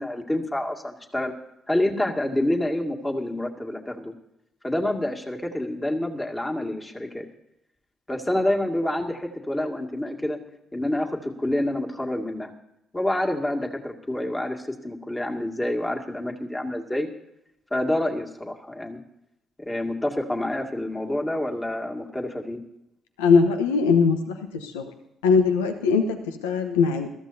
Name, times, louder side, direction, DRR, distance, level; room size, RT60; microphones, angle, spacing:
voice 1, 0.0-1.3 1.7-4.1 4.6-7.3 8.1-10.4 10.7-12.5 12.9-17.1 17.7-19.0 19.6-22.6, left 1 dB, 15° left, 2 dB, 2.2 m, -27 dB
voice 2, 23.2-24.8 25.2-27.1, left 5 dB, 85° left, 7 dB, 1.0 m, -21 dB
21.0 x 14.0 x 2.7 m, 0.85 s
hypercardioid pair, 50°, 0 cm